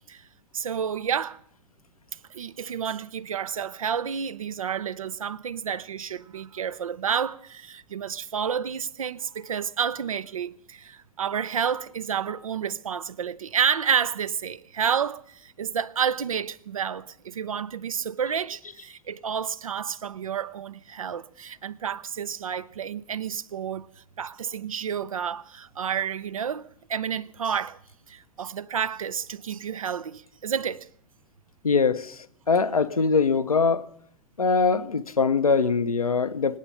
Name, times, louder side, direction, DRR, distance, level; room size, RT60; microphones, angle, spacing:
voice 1, 0.5-1.4 2.3-23.9 24.2-27.8 28.1-30.9, right 7 dB, 75° right, 0.6 m, -30 dB
voice 2, 31.6-32.2 32.5-33.8 34.4-36.6, left 5 dB, 85° left, 0.7 m, -22 dB
25.5 x 8.8 x 5.4 m
figure-of-eight pair, 95°, 18 cm